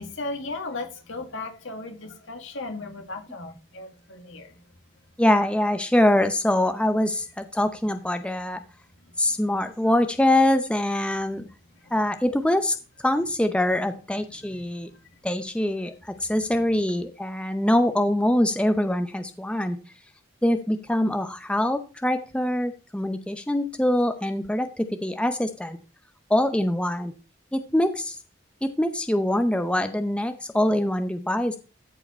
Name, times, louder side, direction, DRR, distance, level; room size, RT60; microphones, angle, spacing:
voice 1, 0.0-4.6 9.3-9.9 14.4-15.1, left 2 dB, 80° left, 4 dB, 2.1 m, -37 dB
voice 2, 5.2-8.6 9.2-11.5 11.9-12.7 13.0-14.9 15.2-15.9 16.2-19.8 20.4-25.8 26.3-27.1 27.5-28.2 28.6-31.6, left 1 dB, 5° left, 8 dB, 0.6 m, -24 dB
14.0 x 4.9 x 4.3 m, 0.33 s
head